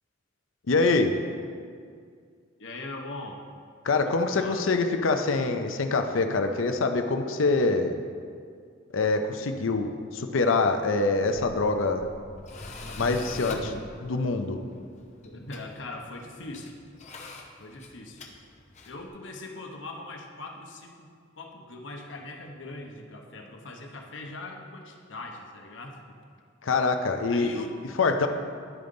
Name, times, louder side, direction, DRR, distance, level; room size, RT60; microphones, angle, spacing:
voice 1, 0.7-1.1 3.8-8.0 8.9-12.1 13.0-14.6 26.6-27.6 28.0-28.3, left 3 dB, 85° left, 6 dB, 0.6 m, -25 dB
voice 2, 2.6-3.4 4.2-4.7 15.2-16.7 17.6-18.2 18.8-21.1 21.4-26.2 27.3-27.8, left 2 dB, 70° left, 2 dB, 0.9 m, -41 dB
Tools, 11.1-19.1, left 2 dB, 35° left, 0.8 m, -43 dB
11.0 x 5.3 x 3.8 m, 2.2 s
head